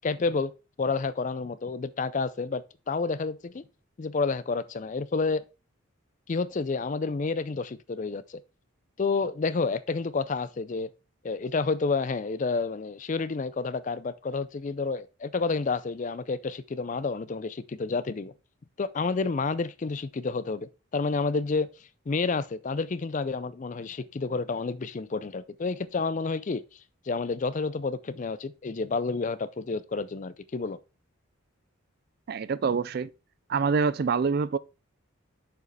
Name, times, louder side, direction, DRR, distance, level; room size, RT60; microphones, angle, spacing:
voice 1, 0.0-0.5 0.8-3.6 4.0-5.4 6.3-8.4 9.0-10.9 11.2-18.3 18.8-21.7 22.1-26.6 27.1-30.8, left 4 dB, 35° left, 0.4 m, -29 dB
voice 2, 32.3-33.1 33.5-34.6, right 5 dB, 45° right, 0.3 m, -26 dB
6.8 x 5.1 x 4.0 m
head